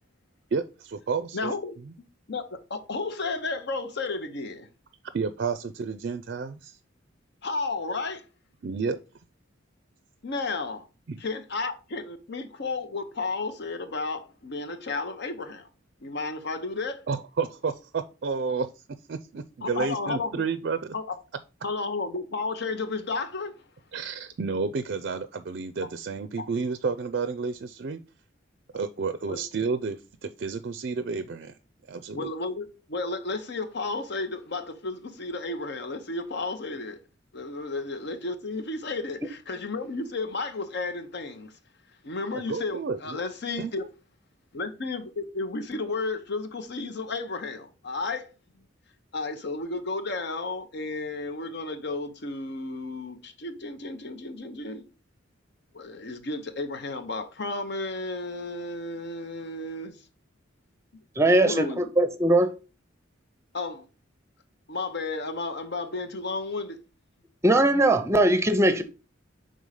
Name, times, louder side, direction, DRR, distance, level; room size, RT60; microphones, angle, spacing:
voice 1, 0.5-1.9 5.1-6.8 8.6-9.0 11.1-11.2 17.1-18.8 19.1-20.9 23.9-28.0 28.7-31.5 31.9-32.3 42.3-43.2 43.6-43.9, right 5 dB, 50° right, 0.4 m, -31 dB
voice 2, 1.3-1.8 2.3-4.7 7.4-8.3 10.2-10.8 11.2-15.7 16.0-17.0 19.6-20.4 20.9-21.2 21.6-23.5 26.4-26.5 29.3-29.4 32.1-37.0 37.3-41.5 42.0-43.9 44.5-48.3 49.1-54.8 55.7-60.0 61.4-61.8 63.5-63.8 64.7-66.8, left 3 dB, 55° left, 0.8 m, -33 dB
voice 3, 61.2-62.5 67.4-68.8, right 1 dB, 15° right, 0.7 m, -20 dB
5.4 x 3.8 x 4.8 m
head